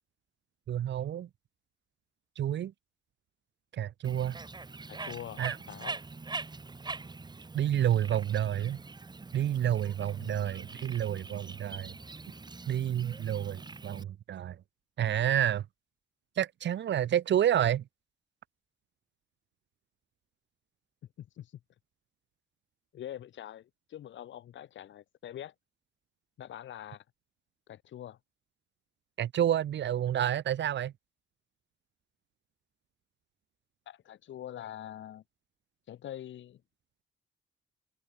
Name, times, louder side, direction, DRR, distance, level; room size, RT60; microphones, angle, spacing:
voice 1, 0.7-1.3 2.3-2.7 3.7-4.4 5.4-5.6 7.5-8.8 9.3-11.9 12.7-14.6 15.0-15.6 16.4-17.8 29.2-30.9, right 10 dB, 65° right, 1.7 m, -29 dB
Bird, 4.0-14.0, right 3 dB, 20° right, 1.8 m, -43 dB
voice 2, 4.9-6.0 10.2-10.5 21.2-21.6 22.9-25.5 26.4-27.0 27.7-28.2 33.9-35.2 35.9-36.6, left 11 dB, 70° left, 2.8 m, -44 dB
cardioid pair, 90°, 20 cm